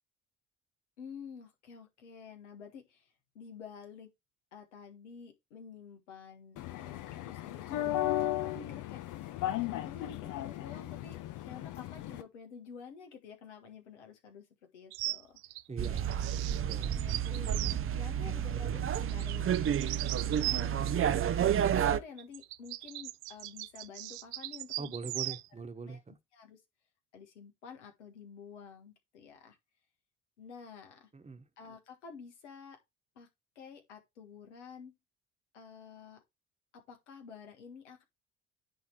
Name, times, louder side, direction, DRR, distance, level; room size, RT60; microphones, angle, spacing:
voice 1, 1.0-4.1 4.5-9.0 9.5-11.2 11.5-14.5 14.7-15.3 17.0-20.0 20.4-21.1 21.4-25.3 25.8-26.0 26.3-26.6 27.1-29.6 30.4-31.1 31.6-32.8 33.2-33.3 33.6-34.9 35.5-36.2 36.7-38.0, left 6 dB, 80° left, 1.8 m, -50 dB
sound 1, 6.6-12.2, left 14 dB, 60° left, 1.0 m, -36 dB
sound 2, 14.9-17.8 18.9-21.0 22.2-25.5, right 19 dB, 75° right, 0.5 m, -39 dB
voice 2, 15.7-16.3 16.6-17.0 24.8-26.2 31.1-31.4, right 4 dB, 20° right, 1.4 m, -42 dB
sound 3, 15.8-22.0, right 9 dB, 40° right, 0.7 m, -30 dB
10.0 x 3.5 x 4.6 m
hypercardioid pair, 50°, 35 cm